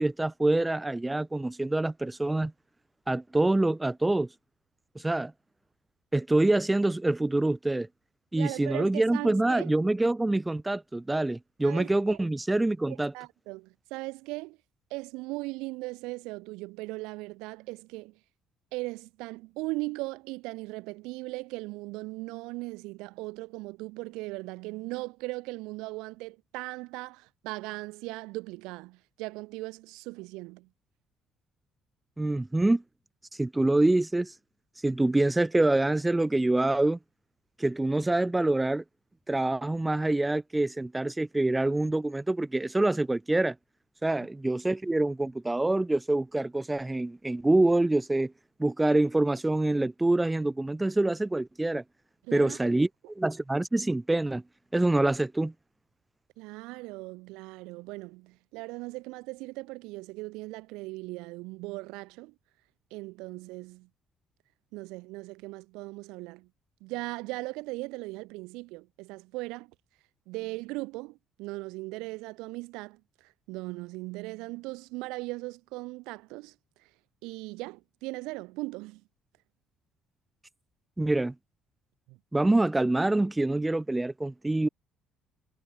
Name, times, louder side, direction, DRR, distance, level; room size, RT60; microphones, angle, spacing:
voice 1, 0.0-2.5 3.1-4.3 4.9-5.3 6.1-7.9 8.3-13.1 32.2-32.8 33.3-34.3 34.8-37.0 37.6-38.8 39.3-43.5 44.0-48.3 48.6-51.8 52.3-54.4 54.7-55.5 81.0-81.3 82.3-84.7, right 2 dB, 15° right, 1.0 m, -26 dB
voice 2, 8.4-9.7 11.6-12.2 13.1-14.6 14.9-18.1 18.7-30.7 52.3-52.6 56.4-62.3 62.9-63.9 64.7-66.5 66.8-69.7 70.3-73.0 73.5-76.5 77.2-79.0 82.1-82.2, right 23 dB, 85° right, 3.2 m, -38 dB
supercardioid pair, 75°, 0 cm